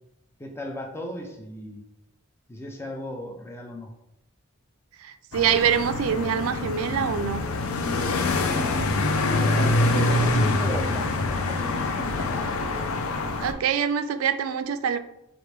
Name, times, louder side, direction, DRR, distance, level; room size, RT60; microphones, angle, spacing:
voice 1, 0.4-1.8 2.5-3.9 9.3-12.5, left 1 dB, 10° left, 2 dB, 0.4 m, -37 dB
voice 2, 5.0-7.5 9.9-10.2 13.4-15.0, right 8 dB, 80° right, 11 dB, 0.3 m, -25 dB
sound 1, 5.3-13.5, left 2 dB, 85° left, 0.5 m, -25 dB
4.5 x 2.5 x 3.3 m, 0.84 s
head